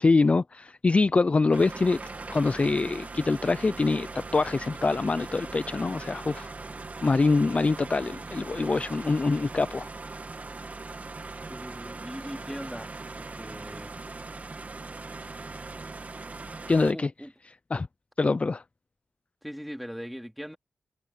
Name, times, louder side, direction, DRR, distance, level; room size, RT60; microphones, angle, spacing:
voice 1, 0.0-6.5 7.0-9.9 16.7-17.1 17.7-17.9 18.2-18.6, left 3 dB, 30° left, 0.4 m, -24 dB
sound 1, 1.5-16.9, right 3 dB, 35° right, 1.9 m, -40 dB
voice 2, 11.5-12.9 13.2-13.9 16.9-17.3 19.4-20.6, equal, ahead, 3.4 m, -40 dB
wide cardioid pair, 110°, 4 cm